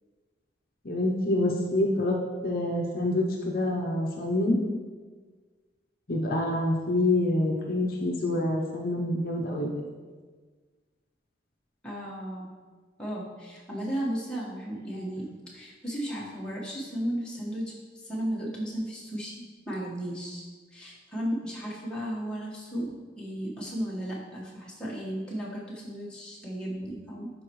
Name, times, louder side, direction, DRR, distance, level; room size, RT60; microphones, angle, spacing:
voice 1, 0.8-2.2 2.4-4.6 6.1-9.7, left 1 dB, 50° left, -1 dB, 0.8 m, -26 dB
voice 2, 11.8-12.5 13.0-19.3 19.6-27.3, equal, 5° left, -7 dB, 1.4 m, -35 dB
11.5 x 4.4 x 3.1 m, 1.5 s
head